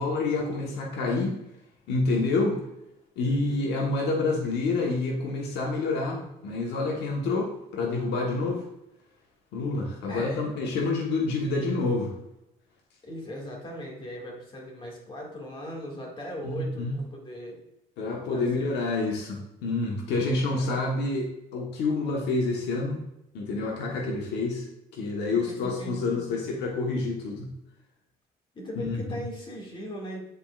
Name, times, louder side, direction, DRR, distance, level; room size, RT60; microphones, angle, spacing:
voice 1, 0.0-1.4 1.9-2.6 3.2-8.6 9.5-12.1 16.4-17.0 18.0-23.0 23.3-27.5 28.8-29.2, left 3 dB, 80° left, -1 dB, 1.2 m, -28 dB
voice 2, 3.2-3.7 10.1-10.5 13.0-17.6 18.3-18.8 20.5-20.7 25.5-26.3 28.5-30.2, equal, 30° left, -1 dB, 2.0 m, -39 dB
9.5 x 4.4 x 2.4 m, 0.86 s
cardioid pair, 110°, 17 cm